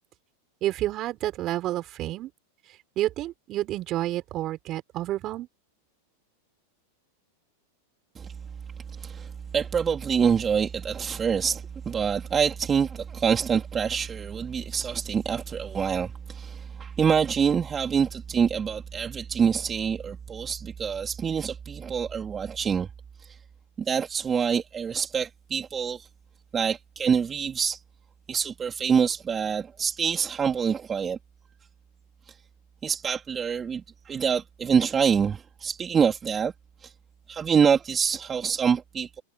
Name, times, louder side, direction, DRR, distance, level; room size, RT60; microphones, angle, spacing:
voice 1, 0.6-2.3 3.0-5.5, right 14 dB, 40° right, 6.5 m, -29 dB
voice 2, 8.9-22.9 23.2-23.4 23.8-26.1 26.5-27.8 28.3-31.2 32.3-32.4 32.8-36.5 36.8-36.9 37.3-39.2, right 7 dB, 25° right, 3.3 m, -26 dB
hypercardioid pair, 110°, 0 cm